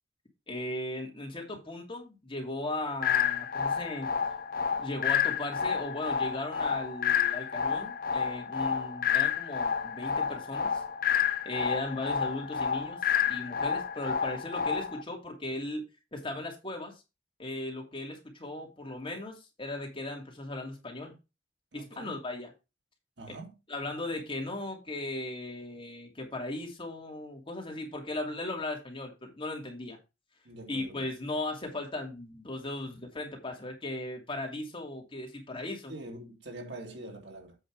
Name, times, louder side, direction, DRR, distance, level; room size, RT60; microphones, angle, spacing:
voice 1, 0.5-4.1 4.8-10.8 11.4-13.0 13.3-16.9 17.4-21.2 21.7-22.5 23.7-30.0 30.7-35.9, left 2 dB, 30° left, 2.9 m, -37 dB
sound 1, 3.0-15.0, left 7 dB, 55° left, 0.6 m, -30 dB
voice 2, 21.7-22.2 23.2-23.5 30.4-31.0 35.9-37.6, right 1 dB, 70° right, 2.5 m, -44 dB
8.2 x 5.5 x 4.8 m
head